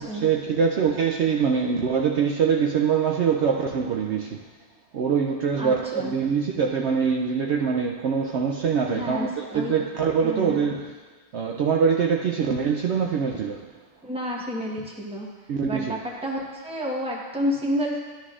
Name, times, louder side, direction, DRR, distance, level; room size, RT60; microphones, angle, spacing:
voice 1, 0.0-4.4 4.9-11.0 11.3-13.7 15.5-16.0, right 6 dB, 65° right, 2 dB, 0.8 m, -24 dB
voice 2, 5.5-6.1 8.9-9.8 10.2-10.6 14.0-15.3 15.7-18.0, equal, 5° right, -2 dB, 1.0 m, -30 dB
11.5 x 11.5 x 2.5 m, 1.4 s
omnidirectional pair, 1.4 m